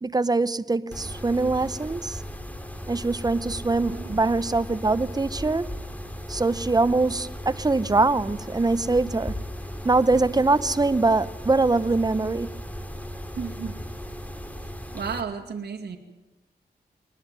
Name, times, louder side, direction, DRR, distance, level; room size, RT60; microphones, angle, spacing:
voice 1, 0.0-2.2 2.9-5.7 6.3-9.4 9.8-12.5, right 3 dB, 20° right, 0.7 m, -23 dB
Mechanisms, 0.9-15.2, equal, 10° left, 2.5 m, -36 dB
voice 2, 13.4-13.8 14.9-16.0, right 6 dB, 75° right, 2.3 m, -33 dB
21.0 x 20.0 x 9.4 m
wide cardioid pair, 90°, 18 cm